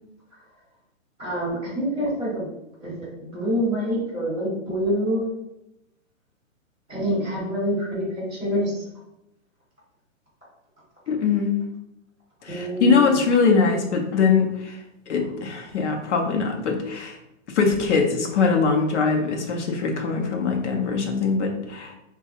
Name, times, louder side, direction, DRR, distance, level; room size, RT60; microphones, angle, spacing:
voice 1, 1.2-2.5 2.8-5.2 6.9-8.8 12.4-13.1, equal, 5° left, -19 dB, 0.3 m, -26 dB
voice 2, 11.1-11.6 12.4-14.8 15.1-17.2 17.5-22.0, left 5 dB, 60° left, 3 dB, 0.7 m, -22 dB
3.4 x 2.3 x 2.8 m, 0.87 s
hypercardioid pair, 160°, 40 cm